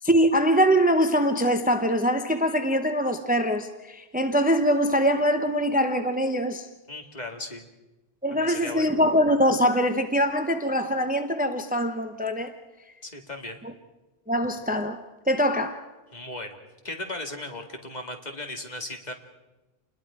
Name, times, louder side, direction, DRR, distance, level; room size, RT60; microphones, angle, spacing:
voice 1, 0.0-6.7 8.2-12.5 13.6-13.7 14.3-15.0 15.3-15.8, equal, 10° right, 7 dB, 0.9 m, -23 dB
voice 2, 6.9-7.6 8.3-8.9 13.0-13.6 16.1-16.6 16.8-19.1, left 2 dB, 45° left, 3 dB, 2.2 m, -36 dB
28.5 x 21.0 x 5.0 m, 1.1 s
omnidirectional pair, 1.1 m